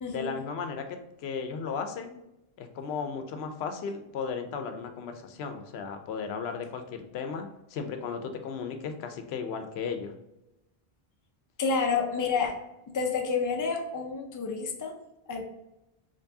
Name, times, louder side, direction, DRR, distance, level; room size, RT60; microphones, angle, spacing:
voice 1, 0.1-2.2 2.6-10.1, left 5 dB, 90° left, 6 dB, 0.8 m, -35 dB
voice 2, 11.6-12.5 12.9-14.9 15.3-15.4, left 5 dB, 25° left, 2 dB, 0.4 m, -29 dB
4.5 x 2.9 x 2.7 m, 0.93 s
omnidirectional pair, 1.0 m